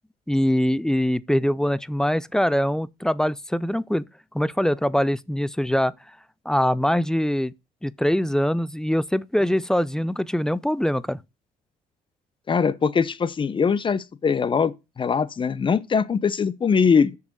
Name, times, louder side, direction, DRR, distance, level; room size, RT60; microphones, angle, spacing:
voice 1, 0.3-4.1 4.3-5.9 6.5-7.5 7.8-11.2, equal, 5° left, 0.4 m, -23 dB
voice 2, 12.5-17.2, left 6 dB, 30° left, 0.7 m, -22 dB
6.7 x 5.1 x 6.5 m
cardioid pair, 110°, 17 cm